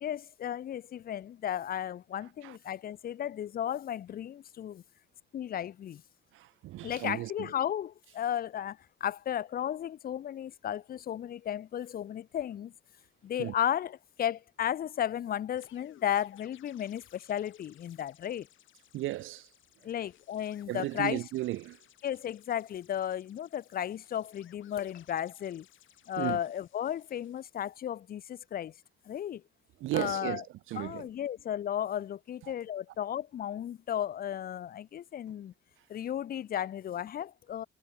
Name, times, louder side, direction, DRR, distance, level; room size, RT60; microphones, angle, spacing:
voice 1, 0.0-4.8 5.3-6.0 6.8-12.7 13.2-18.5 19.8-21.2 22.0-25.7 26.1-28.7 29.1-29.4 29.9-30.4 30.7-35.5 35.9-37.6, left 10 dB, 50° left, 0.5 m, -34 dB
voice 2, 6.3-7.5 13.4-13.5 18.9-19.5 20.7-21.8 26.2-26.4 29.8-31.1 32.4-32.5, right 16 dB, 85° right, 0.8 m, -35 dB
sound 1, 15.5-27.5, left 12 dB, 80° left, 7.0 m, -62 dB
cardioid pair, 90°, 20 cm